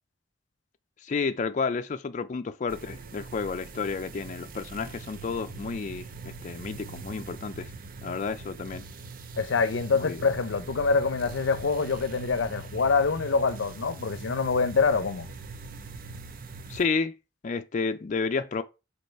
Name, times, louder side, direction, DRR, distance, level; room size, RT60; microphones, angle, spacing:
voice 1, 1.0-7.7 8.0-8.8 10.0-10.2 16.7-17.2 17.4-18.6, left 4 dB, 40° left, 0.4 m, -31 dB
sound 1, 2.7-16.8, right 4 dB, 50° right, 0.6 m, -42 dB
voice 2, 9.4-15.3, left 4 dB, 90° left, 0.6 m, -25 dB
5.3 x 4.1 x 4.5 m
head